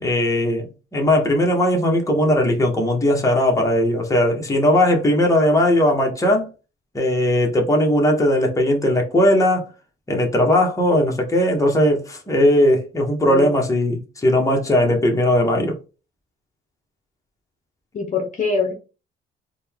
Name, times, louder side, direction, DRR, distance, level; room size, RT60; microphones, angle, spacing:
voice 1, 0.0-6.5 6.9-9.7 10.1-15.8, left 1 dB, 15° left, 1.2 m, -18 dB
voice 2, 17.9-18.7, left 4 dB, 40° left, 0.9 m, -23 dB
4.0 x 2.3 x 3.5 m
cardioid pair, 90°, 20 cm